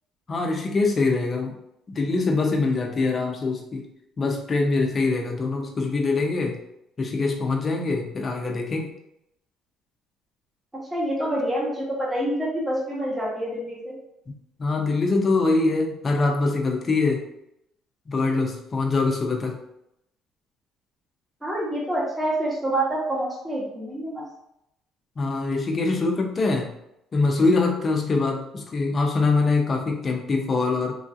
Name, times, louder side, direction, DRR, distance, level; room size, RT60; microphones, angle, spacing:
voice 1, 0.3-1.6 1.9-3.9 4.2-6.6 7.0-8.9 14.6-17.2 18.1-19.6 25.2-26.7 27.1-31.0, left 3 dB, 25° left, 1 dB, 0.5 m, -23 dB
voice 2, 10.9-13.9 21.4-24.2, right 1 dB, 10° right, -5 dB, 0.8 m, -27 dB
3.1 x 2.5 x 2.5 m, 0.80 s
cardioid pair, 145°, 0 cm